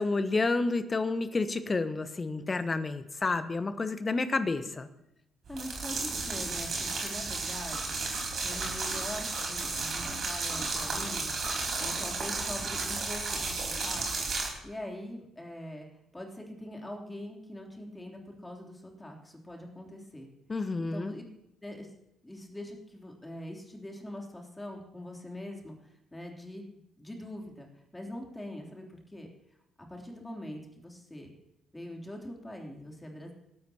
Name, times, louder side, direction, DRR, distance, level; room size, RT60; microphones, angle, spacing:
voice 1, 0.0-4.9 20.5-21.1, left 3 dB, 30° left, 12 dB, 1.1 m, -30 dB
voice 2, 5.5-8.0 8.4-11.4 11.8-14.1 14.6-15.9 16.1-20.3 20.8-21.2 21.6-21.9 22.2-27.7 27.9-29.3 29.8-31.3 31.7-33.3, left 1 dB, 15° left, 1 dB, 3.3 m, -43 dB
sound 1, 5.5-14.5, right 3 dB, 45° right, 4.4 m, -33 dB
26.0 x 13.0 x 2.9 m, 0.82 s
figure-of-eight pair, 45°, 0 cm